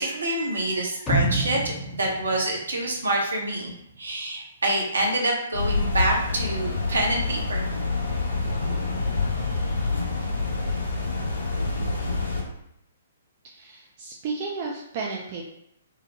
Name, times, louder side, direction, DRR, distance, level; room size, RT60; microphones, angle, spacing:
voice 1, 0.0-3.7 4.0-7.6, right 1 dB, 70° right, -1 dB, 0.7 m, -26 dB
sound 1, 1.1-3.2 3.6-3.7, right 1 dB, 20° left, 0.6 m, -28 dB
sound 2, 5.5-12.4, left 3 dB, 70° left, 0.6 m, -27 dB
voice 2, 13.4-15.4, right 4 dB, 35° right, -2 dB, 0.3 m, -33 dB
2.8 x 2.0 x 2.9 m, 0.77 s
figure-of-eight pair, 120°, 0 cm